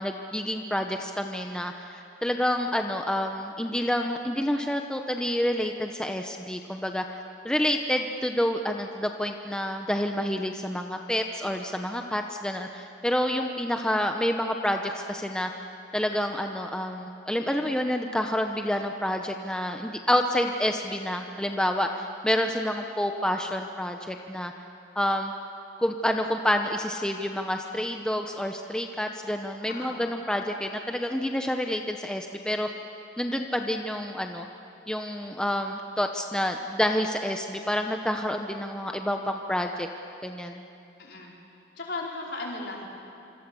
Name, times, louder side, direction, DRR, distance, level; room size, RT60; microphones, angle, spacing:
voice 1, 0.0-7.0 7.4-15.5 15.9-24.5 24.9-25.3 25.8-32.7 33.2-34.5 34.9-39.9 40.2-40.6, equal, 5° left, 3 dB, 0.9 m, -28 dB
voice 2, 17.4-17.7 29.7-30.0 41.0-41.3 41.7-42.8, left 2 dB, 60° left, -2 dB, 4.9 m, -37 dB
26.5 x 26.0 x 7.0 m, 2.6 s
head